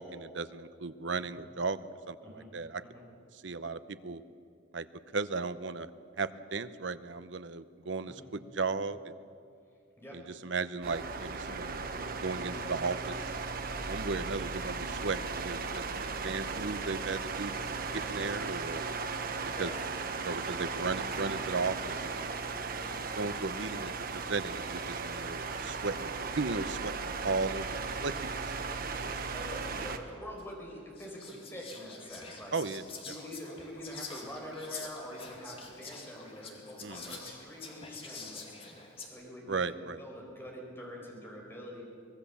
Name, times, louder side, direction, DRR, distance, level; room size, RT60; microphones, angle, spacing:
voice 1, 0.0-1.8 2.1-2.8 3.3-4.2 4.7-4.9 5.1-5.9 6.2-9.1 10.1-11.7 12.2-13.3 13.7-17.5 17.9-18.9 19.6-19.7 20.2-22.3 23.1-27.7 28.0-28.6 32.5-32.8 36.8-37.2 39.5-40.0, right 4 dB, 70° right, 12 dB, 0.8 m, -36 dB
voice 2, 1.1-1.4 2.2-2.5 2.9-3.0 8.0-8.3 10.0-10.2 17.8-18.1 19.4-19.9 29.3-32.5 33.0-41.8, equal, 10° left, -1 dB, 4.8 m, -45 dB
sound 1, 10.8-30.0, right 4 dB, 50° right, 1.2 m, -36 dB
Whispering, 30.4-30.5 31.0-39.1, left 4 dB, 30° left, 2.4 m, -46 dB
24.0 x 19.0 x 7.1 m, 2.5 s
head